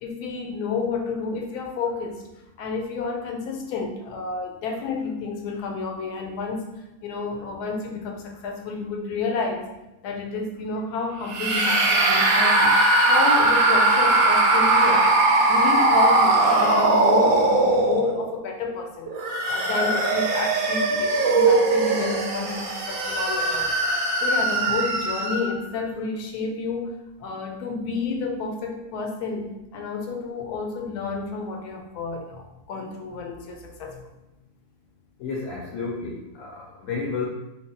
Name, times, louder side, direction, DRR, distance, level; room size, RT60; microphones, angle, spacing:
voice 1, 0.0-2.2 2.6-6.6 7.0-9.7 10.0-12.8 13.0-15.2 15.5-19.1 19.5-23.7 24.2-26.9 27.2-34.1, left 4 dB, 85° left, 2 dB, 1.1 m, -30 dB
sound 1, 11.3-18.4 19.1-25.6, right 2 dB, 65° right, 0.9 m, -20 dB
voice 2, 35.2-37.3, left 4 dB, 65° left, -2 dB, 0.9 m, -31 dB
3.5 x 2.2 x 3.8 m, 0.95 s
omnidirectional pair, 1.7 m